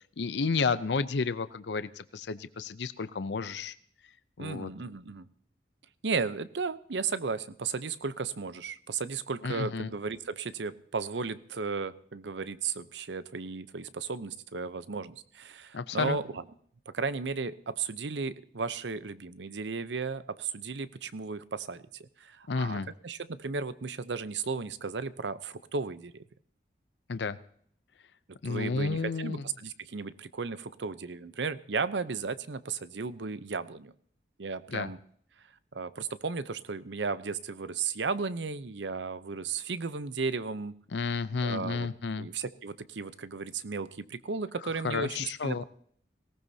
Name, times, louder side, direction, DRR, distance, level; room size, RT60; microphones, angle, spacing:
voice 1, 0.2-3.7 4.4-4.7 9.4-9.9 15.7-16.2 22.5-22.9 27.1-27.4 28.4-29.4 34.7-34.9 40.9-42.3 44.8-45.6, left 4 dB, 80° left, 14 dB, 0.6 m, -31 dB
voice 2, 4.4-5.3 6.0-16.4 16.9-22.8 23.0-26.1 28.4-33.9 34.4-35.0 35.7-40.7 41.4-41.9 42.2-45.6, right 4 dB, 85° right, 15 dB, 0.7 m, -35 dB
18.5 x 18.0 x 2.8 m, 0.62 s
head